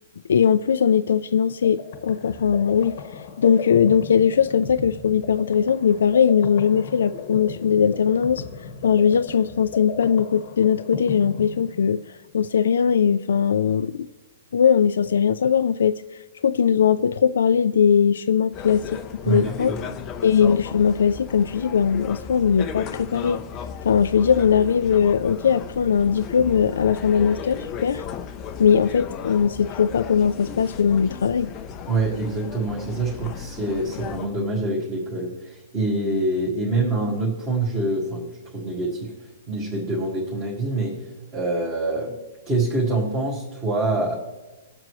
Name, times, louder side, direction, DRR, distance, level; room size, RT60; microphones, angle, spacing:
voice 1, 0.3-8.4 8.8-12.0 12.3-14.1 14.5-16.0 16.4-19.0 19.3-19.7 20.2-23.4 23.8-28.0 28.6-31.5, left 7 dB, 85° left, 10 dB, 0.4 m, -20 dB
sound 1, 1.3-12.2, left 7 dB, 40° left, 1.1 m, -36 dB
sound 2, 18.5-34.3, left 7 dB, 20° left, 0.6 m, -35 dB
voice 2, 19.2-19.9 31.9-38.3 38.5-39.1 39.5-41.0 41.3-42.1 42.5-44.1, right 2 dB, 15° right, -6 dB, 1.8 m, -25 dB
21.5 x 7.6 x 3.1 m, 1.1 s
hypercardioid pair, 175°, 0 cm